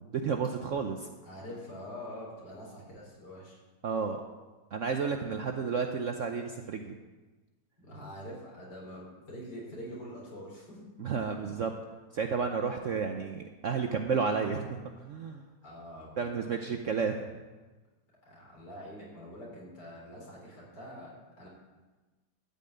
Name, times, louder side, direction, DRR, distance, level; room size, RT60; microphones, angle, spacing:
voice 1, 0.1-1.1 3.8-4.2 4.7-6.9 11.0-11.7 12.1-15.4 16.2-17.3, right 5 dB, 60° right, 5 dB, 0.9 m, -31 dB
voice 2, 1.2-3.6 7.8-10.8 11.2-11.5 15.6-16.8 18.3-21.5, equal, 65° left, -4 dB, 4.5 m, -45 dB
13.0 x 5.7 x 8.6 m, 1.2 s
omnidirectional pair, 2.0 m